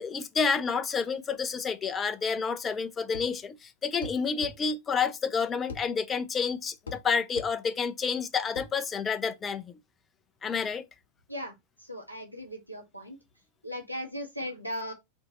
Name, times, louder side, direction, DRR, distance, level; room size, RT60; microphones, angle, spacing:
voice 1, 0.0-9.6 10.4-10.9, left 5 dB, 20° left, 0.4 m, -29 dB
sound 1, 3.1-3.4 4.0-4.6 5.7-5.9 6.9-7.0 7.4-7.5 8.6-8.7, left 4 dB, 70° left, 0.7 m, -40 dB
voice 2, 11.8-13.2 13.6-14.9, equal, 90° right, 0.7 m, -37 dB
2.7 x 2.6 x 4.2 m
figure-of-eight pair, 90°, 0 cm